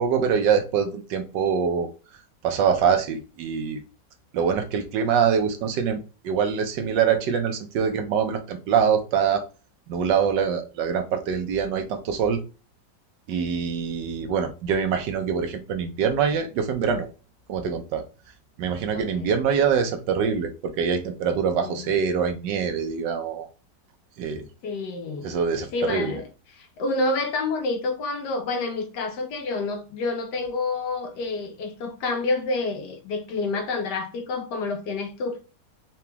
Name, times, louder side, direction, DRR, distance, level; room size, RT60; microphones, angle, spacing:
voice 1, 0.0-1.9 2.4-3.8 4.3-9.4 9.9-12.4 13.3-17.1 17.5-18.0 18.6-23.5 24.2-24.5 25.2-26.1, right 7 dB, 75° right, 1.3 m, -24 dB
voice 2, 18.9-19.3 21.6-21.9 24.6-25.3 25.7-26.2 26.6-35.4, left 3 dB, 70° left, 1.4 m, -28 dB
3.9 x 2.9 x 3.4 m
omnidirectional pair, 2.0 m